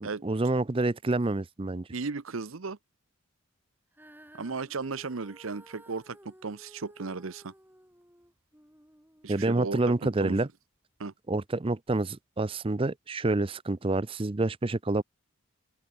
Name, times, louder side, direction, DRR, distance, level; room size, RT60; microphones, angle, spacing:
voice 1, 0.0-1.9 9.3-10.5 11.3-15.0, right 2 dB, 25° right, 0.5 m, -28 dB
voice 2, 1.9-2.8 4.4-7.5 9.2-10.5 11.0-11.1, right 4 dB, 70° right, 0.8 m, -36 dB
Female singing, 3.9-10.3 11.0-11.1, right 1 dB, 10° right, 6.6 m, -56 dB
open air
head